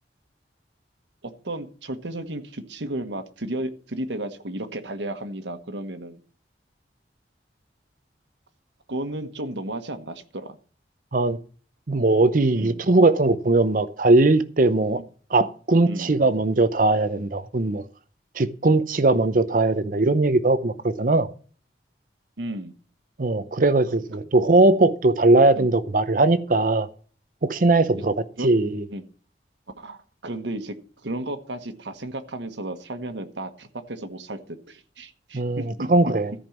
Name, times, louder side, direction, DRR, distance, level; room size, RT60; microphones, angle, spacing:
voice 1, 1.2-6.2 8.9-10.6 12.5-12.8 15.8-16.3 22.4-22.7 25.5-25.7 28.0-28.1 28.4-28.5 28.9-29.0 29.8-30.8 31.0-36.1, right 1 dB, 90° right, 1.3 m, -33 dB
voice 2, 11.9-15.0 15.3-17.8 18.4-21.3 23.2-26.9 27.4-28.8 35.3-36.3, right 2 dB, 50° right, 0.7 m, -20 dB
13.5 x 5.4 x 7.3 m
head